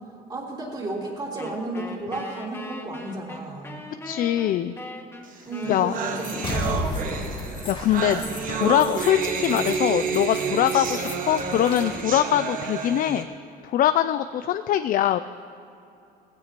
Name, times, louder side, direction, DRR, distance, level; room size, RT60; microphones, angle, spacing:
voice 1, 0.1-3.8 5.5-6.5 6.8-7.4, right 2 dB, 25° right, -3 dB, 3.5 m, -33 dB
Wind instrument woodwind instrument, 1.4-7.7, left 2 dB, 15° left, 1.5 m, -41 dB
voice 2, 4.0-4.7 5.7-5.9 7.7-13.3 13.6-15.2, left 11 dB, 55° left, 12 dB, 0.4 m, -23 dB
sound 1, 5.4-5.5 5.6-13.2, right 5 dB, 55° right, 1.2 m, -29 dB
sound 2, 6.2-12.0, left 2 dB, 30° left, 1.7 m, -34 dB
19.0 x 15.5 x 3.0 m, 2.7 s
cardioid pair, 110°, 17 cm